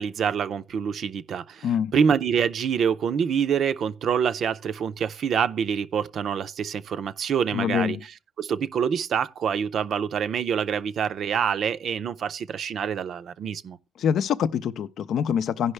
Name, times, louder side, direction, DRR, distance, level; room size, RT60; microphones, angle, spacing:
voice 1, 0.0-1.6 1.9-8.0 8.4-13.8, right 7 dB, 65° right, 0.5 m, -26 dB
voice 2, 7.5-8.0 14.0-15.7, left 8 dB, 70° left, 0.5 m, -25 dB
16.0 x 5.4 x 3.2 m
cardioid pair, 90°, 0 cm